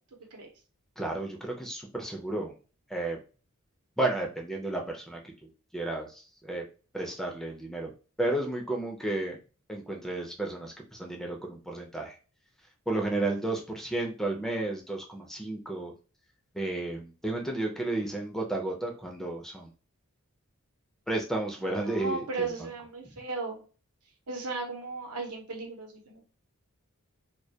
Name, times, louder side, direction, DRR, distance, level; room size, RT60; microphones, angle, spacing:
voice 1, 1.0-2.6 2.9-3.2 4.0-6.6 6.9-7.9 8.2-9.4 9.7-12.2 12.9-15.9 16.5-19.7 21.1-22.5, right 2 dB, ahead, 1 dB, 0.4 m, -32 dB
voice 2, 21.6-23.6 24.3-26.3, right 3 dB, 90° right, 1 dB, 0.8 m, -36 dB
2.2 x 2.1 x 2.7 m, 0.35 s
head